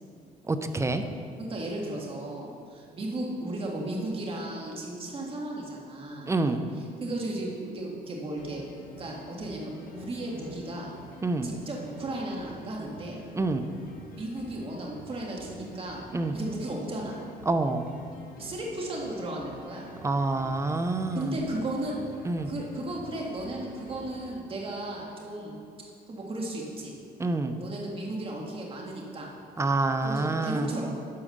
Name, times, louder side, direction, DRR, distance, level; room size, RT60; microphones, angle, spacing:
voice 1, 0.5-1.0 6.3-6.6 11.2-11.5 13.3-13.7 16.1-16.4 17.5-17.8 20.0-21.3 22.2-22.5 27.2-27.6 29.6-30.7, right 2 dB, 15° right, 8 dB, 0.6 m, -27 dB
voice 2, 1.4-6.3 7.0-8.6 9.0-10.9 11.4-13.2 14.1-17.2 18.4-19.9 21.1-22.0 22.5-25.6 26.1-26.9 27.6-29.3 30.0-30.9, right 1 dB, 35° right, -2 dB, 2.1 m, -35 dB
sound 1, 8.4-24.4, left 1 dB, 60° left, 1.4 m, -48 dB
11.0 x 4.9 x 6.5 m, 2.4 s
cardioid pair, 110°, 17 cm